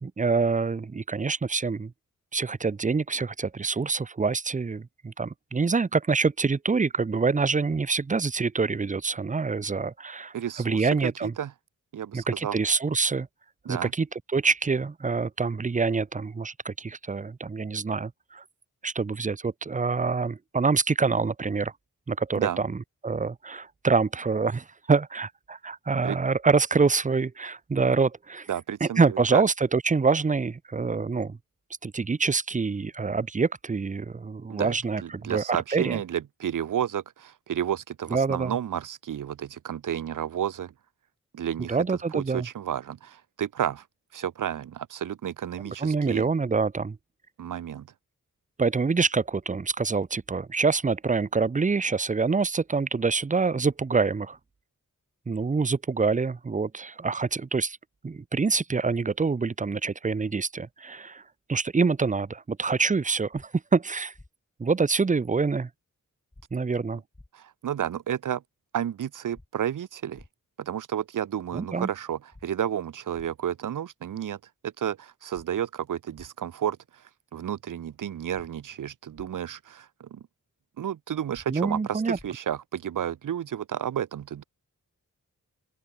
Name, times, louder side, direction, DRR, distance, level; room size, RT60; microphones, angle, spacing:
voice 1, 0.0-1.9 2.3-11.3 12.1-13.3 13.7-18.4 18.8-21.7 22.1-28.5 28.8-31.4 31.8-36.0 38.1-38.6 41.7-42.5 45.8-47.0 48.6-54.4 55.3-57.8 58.0-61.2 61.5-64.1 64.6-65.7 66.5-67.0 71.5-71.9 81.5-82.2, right 4 dB, 25° right, 0.6 m, -26 dB
voice 2, 10.3-11.5 11.9-12.6 13.7-13.9 22.4-22.6 26.0-26.2 28.5-29.4 34.5-34.8 35.0-40.7 41.3-41.8 42.1-43.8 44.1-46.3 47.4-47.9 67.3-68.4 68.7-70.2 70.6-77.0 77.3-80.2 80.8-84.4, right 9 dB, 70° right, 0.7 m, -31 dB
sound 1, 63.3-63.5 64.1-64.3 66.3-66.5 67.1-67.3 69.3-69.5 70.1-70.3 72.3-72.4 73.1-73.3 75.3-75.5 76.1-76.3 78.3-78.5 79.1-79.3 81.3-81.5 82.1-82.3, left 2 dB, 15° left, 1.8 m, -50 dB
open air
wide cardioid pair, 95°, 33 cm